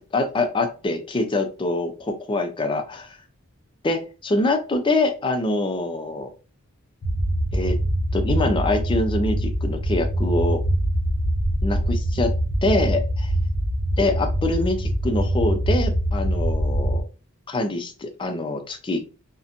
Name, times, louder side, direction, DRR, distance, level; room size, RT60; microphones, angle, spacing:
voice 1, 0.1-3.2 3.8-6.3 7.5-7.8 8.1-10.6 11.6-12.3 12.6-13.3 14.0-17.0 17.5-19.0, left 2 dB, 20° left, 5 dB, 0.4 m, -24 dB
sound 1, 7.0-17.0, right 1 dB, 55° left, 0.7 m, -23 dB
2.5 x 2.1 x 2.8 m, 0.33 s
head